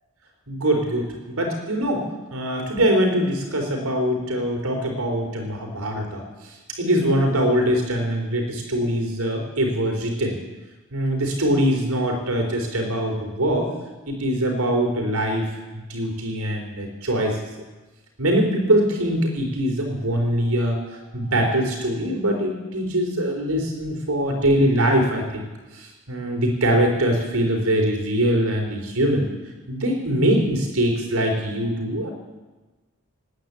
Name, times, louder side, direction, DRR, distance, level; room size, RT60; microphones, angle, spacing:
voice 1, 0.5-2.1 2.3-6.2 6.8-10.4 10.9-13.7 14.1-15.4 15.7-17.4 18.2-25.5 25.7-29.3 29.7-32.1, right 1 dB, 75° right, 2 dB, 4.0 m, -23 dB
18.5 x 9.4 x 8.3 m, 1.2 s
head